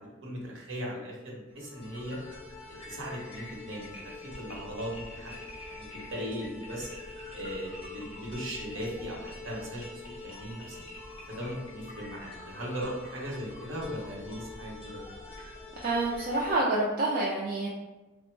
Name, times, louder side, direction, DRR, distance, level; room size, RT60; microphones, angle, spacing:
voice 1, 0.2-2.2 2.7-5.3 5.7-6.9 7.3-10.8 11.3-15.0, equal, 60° right, -2 dB, 0.8 m, -38 dB
sound 1, 1.5-16.6, left 2 dB, 25° left, 0.7 m, -45 dB
voice 2, 15.8-17.7, right 2 dB, 40° right, -5 dB, 0.4 m, -27 dB
3.3 x 2.0 x 3.1 m, 1.1 s
head